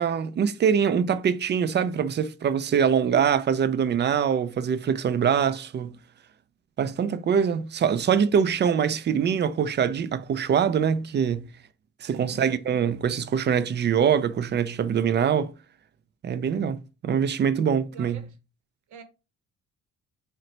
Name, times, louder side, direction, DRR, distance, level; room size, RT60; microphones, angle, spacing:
voice 1, 0.0-6.0 6.8-11.5 12.0-15.5 16.2-18.3, right 7 dB, 35° right, 0.4 m, -24 dB
voice 2, 12.1-12.4 17.9-18.3 18.9-19.0, right 5 dB, 70° right, 0.8 m, -45 dB
3.8 x 2.2 x 4.3 m
cardioid pair, 90°, 30 cm